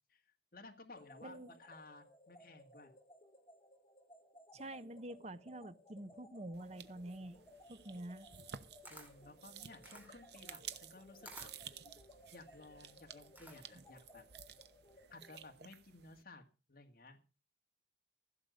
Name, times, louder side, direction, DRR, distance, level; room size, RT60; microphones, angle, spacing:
voice 1, 0.1-2.9 8.9-11.5 12.3-14.2 15.1-16.4 16.7-17.2, left 2 dB, 50° left, 1.9 m, -56 dB
sound 1, 0.9-15.5, left 1 dB, 20° left, 3.7 m, -62 dB
voice 2, 1.2-1.5 4.5-7.4 7.7-8.3, right 1 dB, 35° right, 0.8 m, -47 dB
sound 2, 6.5-16.2, right 8 dB, 65° right, 0.9 m, -54 dB
Camera, 8.7-13.9, right 1 dB, 10° right, 2.6 m, -57 dB
16.0 x 6.7 x 7.8 m
head